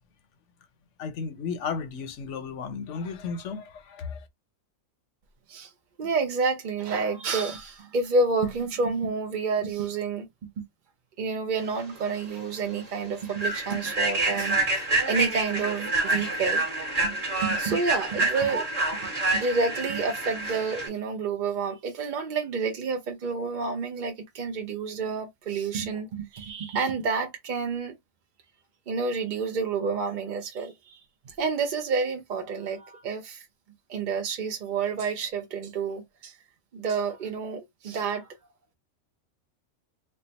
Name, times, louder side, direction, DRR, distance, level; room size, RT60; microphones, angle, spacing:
voice 1, 1.0-4.3, left 5 dB, 65° left, 1.0 m, -34 dB
voice 2, 6.0-10.3 10.6-10.7 11.2-16.6 17.0-17.2 17.4-18.7 18.9-27.9 28.9-31.0 31.3-33.5 33.9-36.4 36.7-38.3, right 4 dB, 55° right, 0.5 m, -29 dB
Human voice / Train, 12.0-12.2 12.6-12.8 13.3-20.9, right 2 dB, 30° right, 1.3 m, -27 dB
3.3 x 2.1 x 4.0 m
omnidirectional pair, 1.4 m